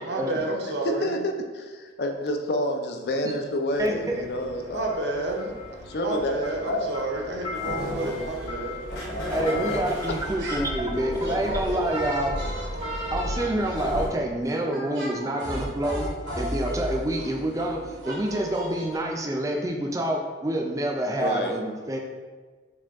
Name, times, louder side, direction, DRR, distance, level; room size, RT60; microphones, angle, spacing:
voice 1, 0.0-1.2 4.7-8.8, right 2 dB, 70° right, 1 dB, 0.6 m, -30 dB
voice 2, 0.8-5.1 5.9-6.3 6.7-6.8 21.2-21.6, left 1 dB, 60° left, 4 dB, 0.4 m, -28 dB
sound 1, 3.0-3.2 4.9-6.2 6.4-14.1 14.9-15.1 15.3-17.2 17.5-17.6, left 6 dB, 35° left, 0.8 m, -41 dB
between two train carriages I, 3.7-14.1, equal, 85° left, 1.2 m, -35 dB
voice 3, 3.8-4.1 9.3-12.4 13.1-22.0, right 1 dB, 20° right, 1 dB, 0.4 m, -27 dB
sound 2, 10.2-10.7 10.9-19.0, equal, 90° right, 1.1 m, -35 dB
4.9 x 2.3 x 3.4 m, 1.4 s
head